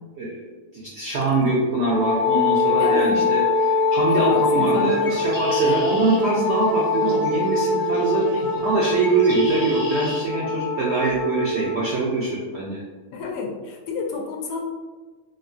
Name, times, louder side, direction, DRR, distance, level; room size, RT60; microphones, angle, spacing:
voice 1, 0.7-12.8, right 2 dB, 80° right, -4 dB, 0.6 m, -23 dB
Wind instrument woodwind instrument, 1.9-11.8, left 3 dB, 55° left, 1.1 m, -23 dB
voice 2, 2.8-3.2 4.1-5.3 5.6-5.9 8.3-8.5 13.1-14.6, left 4 dB, 85° left, 1 dB, 1.1 m, -30 dB
Bird, 4.7-10.2, equal, 35° left, 0.5 m, -38 dB
3.0 x 2.3 x 2.5 m, 1.3 s
omnidirectional pair, 1.7 m